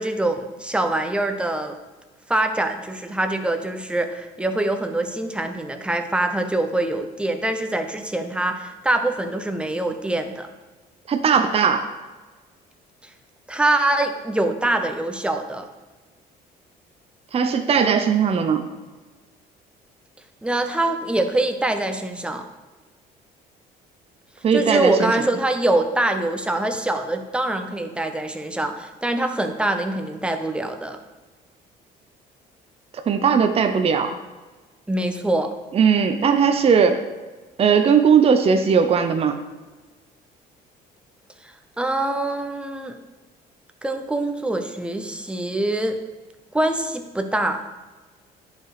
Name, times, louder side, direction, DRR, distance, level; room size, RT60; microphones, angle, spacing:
voice 1, 0.0-1.8 2.3-10.5 13.5-15.7 20.4-22.5 24.5-31.0 34.9-35.5 41.4-43.0 43.8-46.0 46.5-47.6, right 2 dB, 5° right, 6 dB, 0.8 m, -24 dB
voice 2, 11.1-11.9 17.3-18.7 24.4-25.1 33.1-34.1 35.7-37.0 37.6-39.4, right 6 dB, 35° right, 7 dB, 0.7 m, -18 dB
10.5 x 5.1 x 4.8 m, 1.3 s
cardioid pair, 110°, 17 cm